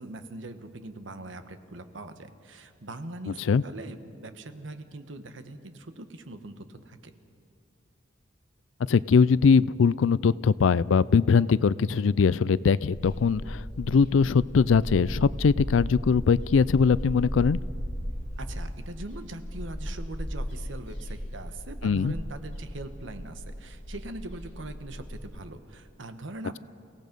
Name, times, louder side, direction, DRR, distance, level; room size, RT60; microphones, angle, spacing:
voice 1, 0.0-7.1 18.4-26.6, right 2 dB, 75° right, 9 dB, 1.2 m, -41 dB
voice 2, 8.9-17.6 21.8-22.1, left 5 dB, 85° left, 20 dB, 0.4 m, -21 dB
sound 1, 12.9-25.2, equal, 40° left, 5.8 m, -36 dB
29.5 x 17.0 x 5.3 m, 2.4 s
head